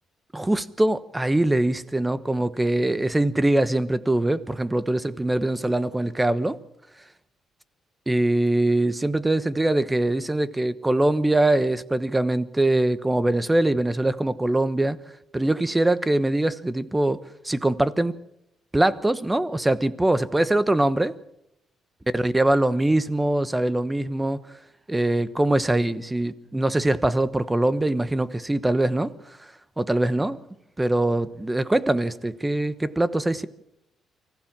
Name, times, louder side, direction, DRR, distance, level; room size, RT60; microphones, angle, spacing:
voice 1, 0.3-6.6 8.1-15.0 15.3-18.2 18.7-21.1 22.1-24.4 24.9-29.1 29.8-30.4 30.8-33.5, right 1 dB, 15° right, 1.1 m, -23 dB
24.5 x 15.5 x 7.4 m
cardioid pair, 90°, 0 cm